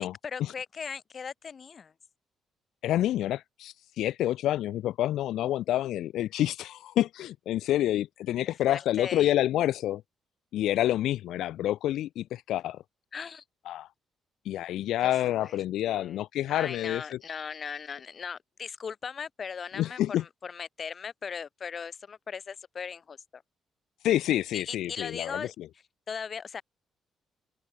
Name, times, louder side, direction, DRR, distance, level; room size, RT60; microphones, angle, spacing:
voice 1, 0.0-1.9 8.7-9.3 13.1-13.4 15.0-15.1 15.4-15.6 15.8-16.2 16.5-23.4 24.5-25.5 26.1-26.6, left 6 dB, 45° left, 6.4 m, -38 dB
voice 2, 2.8-10.0 10.5-12.8 13.7-13.9 14.4-17.2 19.8-20.2 24.0-25.7, left 13 dB, 80° left, 2.3 m, -28 dB
cardioid pair, 90°, 0 cm